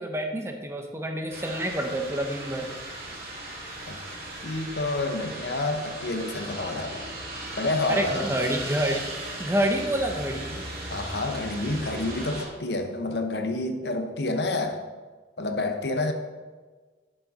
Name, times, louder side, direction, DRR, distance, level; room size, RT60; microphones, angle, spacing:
voice 1, 0.0-2.7 7.9-9.0 9.4-10.6, right 1 dB, 15° right, 3 dB, 1.0 m, -28 dB
sound 1, 1.3-12.5, right 1 dB, 55° right, 2.4 m, -37 dB
voice 2, 4.4-7.1 7.6-8.3 10.9-14.9 15.4-16.1, left 2 dB, 70° left, 6 dB, 1.0 m, -29 dB
11.0 x 7.3 x 4.1 m, 1.4 s
head